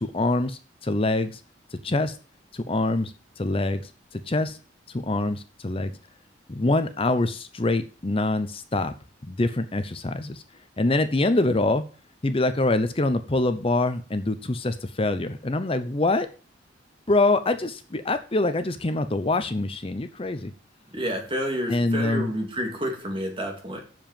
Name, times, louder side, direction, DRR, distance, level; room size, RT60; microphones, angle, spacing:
voice 1, 0.0-1.4 1.7-2.2 2.5-3.8 4.1-4.6 4.9-5.9 6.5-8.9 9.3-10.4 10.8-11.9 12.2-16.3 17.1-20.5 21.7-22.3, left 2 dB, 30° left, 11 dB, 0.7 m, -25 dB
voice 2, 20.9-23.8, equal, 30° right, 2 dB, 2.6 m, -29 dB
7.7 x 7.1 x 7.4 m, 0.37 s
head